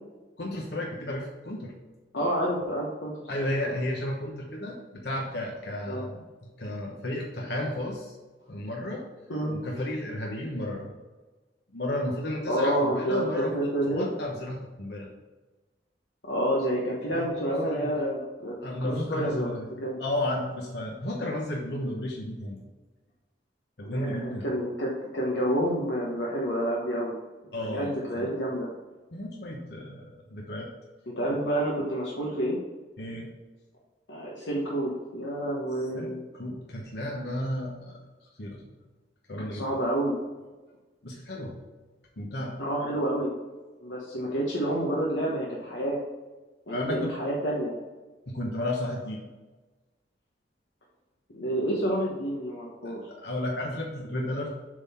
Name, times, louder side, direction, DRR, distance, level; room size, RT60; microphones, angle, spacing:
voice 1, 0.4-1.7 3.3-6.2 6.6-8.1 8.5-9.0 9.5-10.9 11.7-15.1 17.1-17.9 18.6-19.7 20.0-22.7 23.8-24.4 27.5-28.3 29.1-30.7 31.3-31.4 33.0-33.3 35.9-38.0 38.4-38.6 39.3-39.6 41.0-41.6 42.2-42.6 46.7-47.1 48.3-49.3 52.8-54.6, left 1 dB, 60° left, -1 dB, 1.1 m, -33 dB
voice 2, 2.1-3.7 5.9-6.0 9.3-9.6 12.5-14.1 16.2-19.5 19.8-20.0 23.8-27.1 27.6-28.7 31.1-32.6 34.1-36.2 39.5-40.2 42.6-43.3 43.8-46.0 46.7-47.7 51.3-53.0, right 1 dB, 85° left, -3 dB, 1.2 m, -29 dB
7.9 x 3.8 x 5.6 m, 1.2 s
head